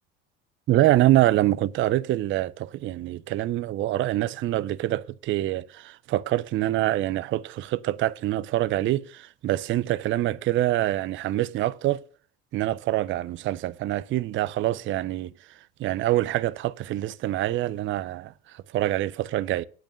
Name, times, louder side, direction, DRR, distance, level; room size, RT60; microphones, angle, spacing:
voice 1, 0.7-12.0 12.5-15.3 15.8-19.6, right 14 dB, 40° right, 0.5 m, -25 dB
8.6 x 5.9 x 6.8 m
supercardioid pair, 95°, 30 cm